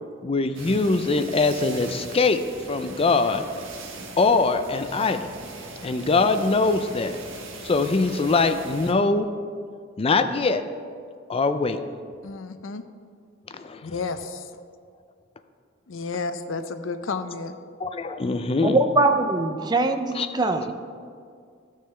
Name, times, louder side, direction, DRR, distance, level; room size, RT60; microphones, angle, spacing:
voice 1, 0.2-2.4 2.7-3.4 4.2-5.3 5.8-7.2 7.6-9.3 10.0-10.6 11.3-11.8 13.5-14.0 17.8-18.8 20.1-20.3, left 3 dB, 30° left, 9 dB, 0.4 m, -22 dB
sound 1, 0.5-8.9, right 3 dB, 80° right, 1.2 m, -40 dB
voice 2, 12.2-12.8 13.8-14.4 15.9-17.5, left 4 dB, 75° left, 10 dB, 0.5 m, -31 dB
voice 3, 18.6-20.7, right 2 dB, 20° right, 7 dB, 0.5 m, -22 dB
14.0 x 6.5 x 3.3 m, 2.2 s
head